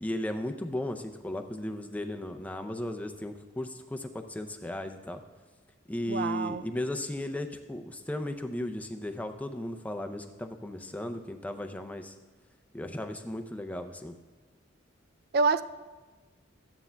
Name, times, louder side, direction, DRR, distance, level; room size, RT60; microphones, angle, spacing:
voice 1, 0.0-5.2 5.9-12.2 12.7-14.1, left 1 dB, 10° left, 6 dB, 0.5 m, -35 dB
voice 2, 6.1-6.6 15.3-15.6, right 4 dB, 50° right, 12 dB, 0.3 m, -26 dB
14.0 x 9.5 x 2.2 m, 1.3 s
head